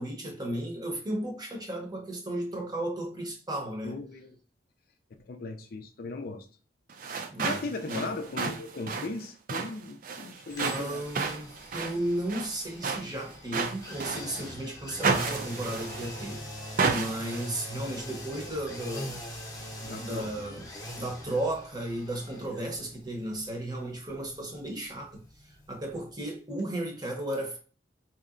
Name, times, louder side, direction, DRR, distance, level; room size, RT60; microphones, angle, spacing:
voice 1, 0.0-4.0 7.3-7.6 7.9-8.1 10.6-19.2 19.9-20.7 20.9-25.2 25.5-27.6, right 1 dB, 20° right, 0.8 m, -34 dB
voice 2, 3.8-4.4 5.3-6.5 7.4-11.0 19.8-20.6, left 3 dB, 55° left, 0.4 m, -37 dB
sound 1, 6.9-14.5 15.0-16.3 16.8-17.5, right 4 dB, 50° right, 0.5 m, -32 dB
sound 2, 10.5-26.3 26.6-26.7, equal, 20° left, 0.8 m, -43 dB
4.3 x 2.8 x 2.5 m
head